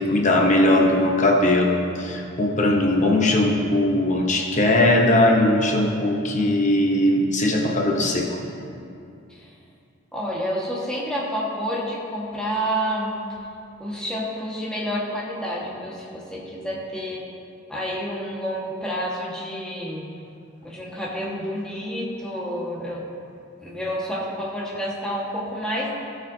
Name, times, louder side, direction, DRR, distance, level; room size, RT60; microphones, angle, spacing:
voice 1, 0.0-8.4, left 1 dB, 40° left, 0 dB, 0.8 m, -19 dB
voice 2, 10.1-13.4 13.8-17.2 17.7-20.0 20.6-23.0 23.6-25.9, equal, 5° left, -6 dB, 1.5 m, -29 dB
16.5 x 5.9 x 2.8 m, 2.5 s
head